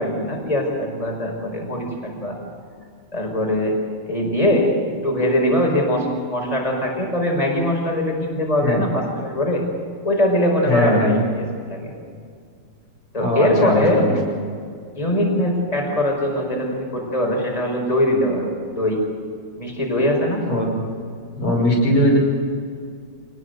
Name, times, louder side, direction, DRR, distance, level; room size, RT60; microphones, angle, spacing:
voice 1, 0.0-2.4 3.1-3.8 4.1-4.7 5.0-9.6 10.0-11.9 13.1-14.1 14.9-18.5 18.8-19.0 19.6-20.4, left 1 dB, 15° left, 1 dB, 5.2 m, -21 dB
voice 2, 10.7-11.2 13.2-14.1 20.5-20.7 21.4-22.2, left 1 dB, 80° left, -1 dB, 7.3 m, -19 dB
27.5 x 20.0 x 8.0 m, 2.2 s
omnidirectional pair, 2.3 m